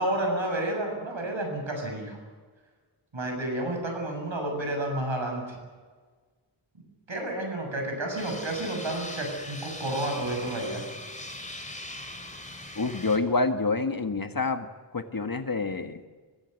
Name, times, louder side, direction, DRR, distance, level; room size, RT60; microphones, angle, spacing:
voice 1, 0.0-2.2 3.1-5.6 7.1-10.8, right 1 dB, 65° right, 2 dB, 7.7 m, -30 dB
sound 1, 8.2-13.2, left 1 dB, 15° left, 3.8 m, -40 dB
voice 2, 12.7-14.7 14.9-16.0, left 3 dB, 45° left, 7 dB, 1.7 m, -27 dB
25.5 x 16.0 x 8.1 m, 1.4 s
wide cardioid pair, 65°, 49 cm